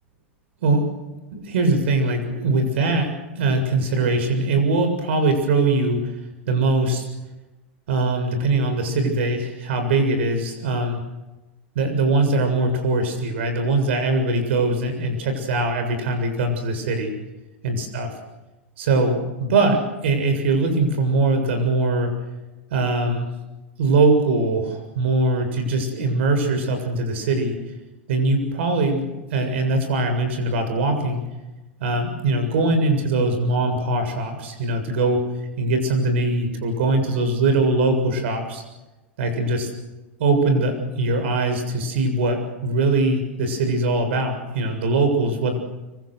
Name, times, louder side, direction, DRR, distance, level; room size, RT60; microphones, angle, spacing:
voice 1, 1.3-6.0 6.5-7.0 7.9-11.0 11.8-17.1 17.6-18.1 18.8-22.1 22.7-23.3 23.8-27.6 28.1-31.2 31.8-35.2 35.6-38.6 39.2-39.7 40.2-45.5, right 2 dB, 70° right, 6 dB, 7.1 m, -21 dB
26.0 x 24.5 x 6.5 m, 1.1 s
hypercardioid pair, 100°, 7 cm